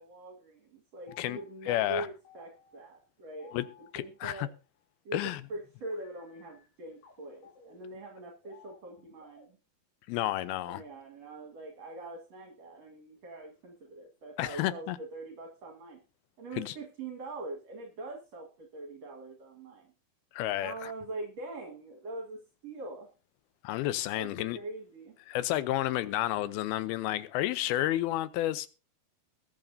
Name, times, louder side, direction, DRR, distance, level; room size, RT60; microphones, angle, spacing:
voice 1, 0.0-3.6 4.0-4.5 5.0-9.6 10.4-16.0 16.4-19.9 20.6-23.1 24.1-25.2, right 2 dB, 50° right, 2.6 m, -43 dB
sound 1, 1.1-4.6 5.5-9.5, left 6 dB, 60° left, 6.0 m, -59 dB
voice 2, 1.7-2.1 3.5-3.6 3.9-4.5 5.1-5.4 10.1-10.8 14.4-15.0 16.6-16.7 20.3-20.9 23.6-24.6 25.3-28.7, left 14 dB, 80° left, 2.6 m, -31 dB
21.0 x 8.9 x 2.7 m
omnidirectional pair, 4.5 m